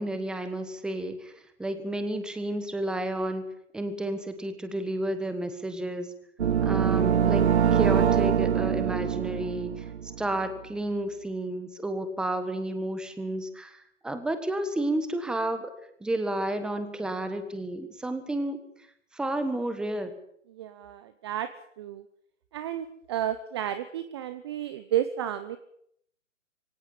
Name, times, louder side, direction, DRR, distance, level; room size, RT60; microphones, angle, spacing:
voice 1, 0.0-1.3 1.6-3.4 3.7-6.1 6.6-7.4 7.7-9.9 10.2-15.7 16.0-18.6 19.1-20.1, right 1 dB, ahead, 9 dB, 1.5 m, -31 dB
sound 1, 6.4-10.4, right 8 dB, 55° right, 1.1 m, -24 dB
voice 2, 20.6-21.5 21.8-22.0 22.5-25.6, right 11 dB, 20° right, 12 dB, 0.8 m, -32 dB
24.0 x 18.0 x 7.2 m, 0.67 s
hypercardioid pair, 150°, 39 cm